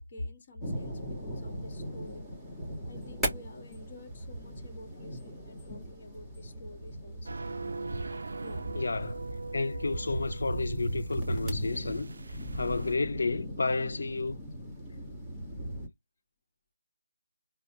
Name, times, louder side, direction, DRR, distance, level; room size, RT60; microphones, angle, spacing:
voice 1, 0.0-2.3 2.9-7.4 8.4-8.7, left 1 dB, 35° left, 1.5 m, -47 dB
sound 1, 0.6-15.9, right 1 dB, ahead, 1.3 m, -38 dB
sound 2, 7.3-13.0, right 3 dB, 55° right, 0.4 m, -41 dB
voice 2, 8.7-9.2 9.5-12.1 12.5-14.4, left 3 dB, 55° left, 0.5 m, -31 dB
4.6 x 2.2 x 2.8 m
figure-of-eight pair, 160°, 0 cm